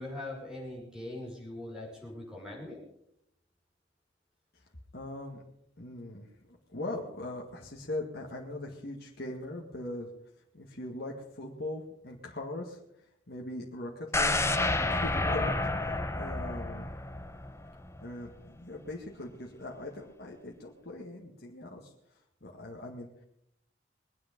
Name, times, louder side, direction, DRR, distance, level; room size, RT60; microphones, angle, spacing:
voice 1, 0.0-2.8, left 1 dB, 5° right, -3 dB, 5.9 m, -41 dB
voice 2, 4.9-5.4 5.8-6.2 6.7-10.1 10.5-12.8 13.3-14.4 14.9-16.9 18.0-21.9 22.4-23.1, left 2 dB, 55° left, -1 dB, 2.0 m, -40 dB
sound 1, 14.1-18.1 18.5-18.6, left 2 dB, 15° left, 0.9 m, -30 dB
22.0 x 9.5 x 5.2 m, 0.75 s
head